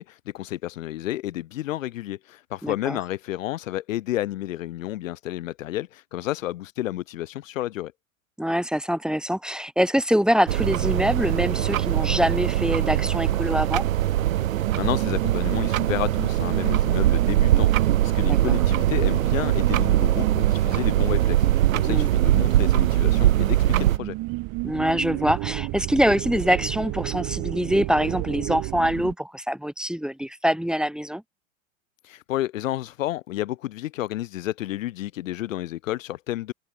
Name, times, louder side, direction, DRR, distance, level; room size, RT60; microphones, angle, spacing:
voice 1, 0.0-7.9 14.8-24.2 32.0-36.5, left 14 dB, 70° left, 2.0 m, -31 dB
voice 2, 2.6-3.0 8.4-13.8 18.2-18.4 21.9-22.1 24.6-31.2, equal, ahead, 2.2 m, -24 dB
sound 1, 10.5-24.0, right 13 dB, 75° right, 1.3 m, -22 dB
sound 2, 13.7-29.1, right 24 dB, 50° right, 7.1 m, -32 dB
open air
hypercardioid pair, 90°, 41 cm